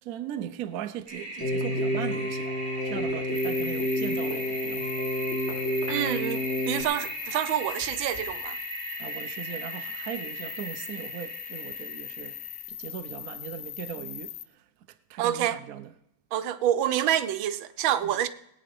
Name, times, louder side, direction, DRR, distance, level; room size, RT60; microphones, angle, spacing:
voice 1, 0.0-2.6 2.8-4.9 9.0-12.4 12.7-15.9 18.0-18.2, right 10 dB, 65° right, 0.9 m, -39 dB
Toilet flush, 1.1-12.6, right 1 dB, 25° right, 5.4 m, -38 dB
Keyboard (musical), 1.4-6.8, equal, 35° left, 1.8 m, -29 dB
sound 1, 3.3-14.4, left 12 dB, 80° left, 1.4 m, -40 dB
voice 2, 5.9-8.6 15.2-15.6 16.3-18.3, right 11 dB, 90° right, 1.5 m, -27 dB
20.0 x 8.9 x 5.2 m
omnidirectional pair, 2.1 m